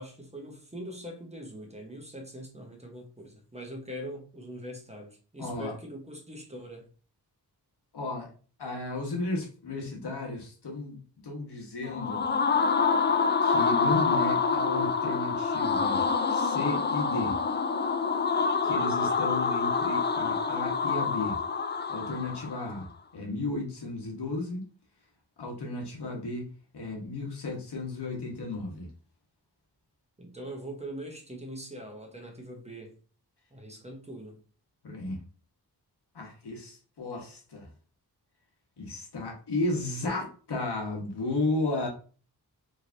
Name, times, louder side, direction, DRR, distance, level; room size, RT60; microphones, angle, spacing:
voice 1, 0.0-6.9 30.2-33.0 33.5-34.4, right 1 dB, 15° right, 1.1 m, -42 dB
voice 2, 5.4-5.7 7.9-8.3 8.6-12.2 13.4-16.0 16.3-17.4 18.6-21.4 21.9-22.9 23.1-24.6 25.4-28.9 34.8-35.2 36.1-37.7 38.8-41.9, left 2 dB, 80° left, 1.4 m, -34 dB
sound 1, 11.8-22.7, left 5 dB, 30° left, 0.3 m, -27 dB
4.9 x 3.2 x 2.6 m
wide cardioid pair, 120°, 40 cm